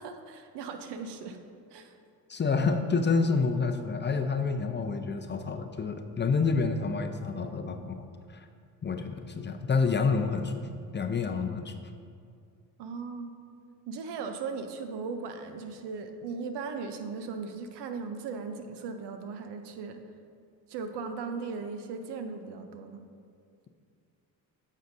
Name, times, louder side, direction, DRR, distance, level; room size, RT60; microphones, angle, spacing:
voice 1, 0.0-1.4 1.7-1.9 12.8-13.3 13.9-20.0 20.7-23.0, right 5 dB, 70° right, 7 dB, 0.8 m, -38 dB
voice 2, 2.3-8.1 8.3-8.5 8.8-10.7 10.9-11.7, left 4 dB, 25° left, 6 dB, 0.5 m, -28 dB
9.1 x 6.3 x 2.7 m, 2.3 s
supercardioid pair, 60°, 42 cm